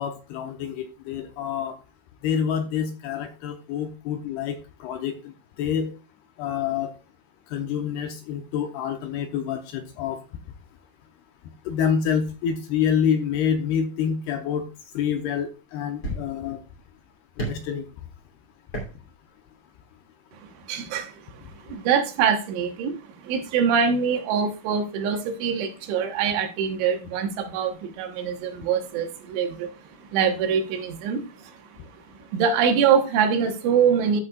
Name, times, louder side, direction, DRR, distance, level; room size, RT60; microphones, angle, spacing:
voice 1, 0.0-1.8 2.2-5.1 5.6-5.9 6.4-6.9 7.5-10.2 11.7-14.6 14.9-16.6 17.5-17.9, left 8 dB, 80° left, 6 dB, 2.5 m, -27 dB
sound 1, 14.5-14.6 15.5-15.6 16.0-16.6 17.4-17.7 18.7-19.0 19.3-19.4, right 2 dB, 25° left, 2.6 m, -33 dB
voice 2, 20.7-23.0 23.2-29.7 30.0-31.6 32.3-34.2, right 7 dB, 90° right, 6 dB, 3.7 m, -24 dB
13.5 x 6.7 x 2.3 m, 0.30 s
omnidirectional pair, 5.3 m